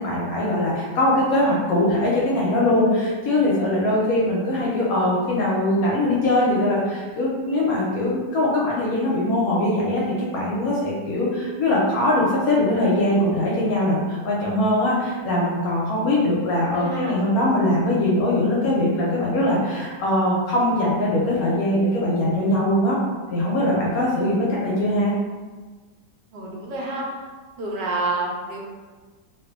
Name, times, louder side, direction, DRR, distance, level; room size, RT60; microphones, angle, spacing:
voice 1, 0.0-23.0 23.3-25.1, left 1 dB, 70° left, -5 dB, 0.9 m, -21 dB
voice 2, 16.6-17.1 26.3-27.0 27.6-28.6, right 2 dB, 80° right, -3 dB, 1.3 m, -28 dB
2.7 x 2.5 x 2.4 m, 1.4 s
omnidirectional pair, 1.9 m